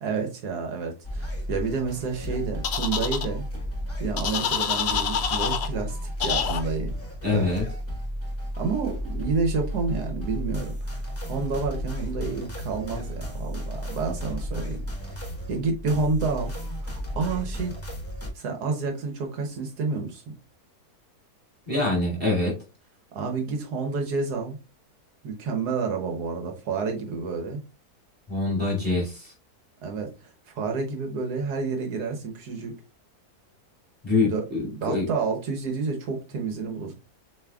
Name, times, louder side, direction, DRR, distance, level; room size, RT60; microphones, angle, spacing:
voice 1, 0.0-3.5 4.0-6.9 7.3-7.5 8.6-15.2 15.5-17.7 18.3-20.3 23.1-24.6 25.2-27.6 29.8-32.7 34.2-36.9, right 4 dB, 80° right, 1.5 m, -29 dB
sound 1, 1.0-18.3, equal, 10° left, 1.0 m, -33 dB
sound 2, 2.6-3.3 4.2-5.7 6.2-6.6, left 7 dB, 60° left, 0.7 m, -26 dB
voice 2, 7.2-7.6 21.7-22.5 28.3-29.3 34.0-35.1, left 2 dB, 5° right, 2.6 m, -25 dB
7.0 x 3.1 x 2.3 m
omnidirectional pair, 1.7 m